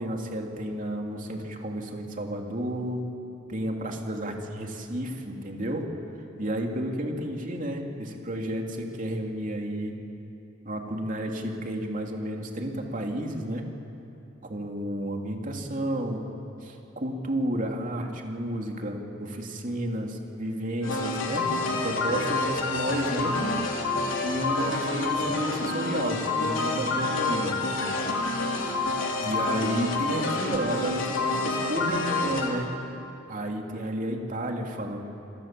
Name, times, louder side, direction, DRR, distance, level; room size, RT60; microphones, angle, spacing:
voice 1, 0.0-3.0 3.5-5.8 6.4-10.0 10.6-13.7 14.4-16.2 16.6-23.6 24.2-27.6 29.2-32.7 33.3-35.0, right 1 dB, 45° right, 2 dB, 2.9 m, -31 dB
sound 1, 20.8-32.5, left 3 dB, 85° left, 3.4 m, -28 dB
28.5 x 21.0 x 7.7 m, 2.9 s
head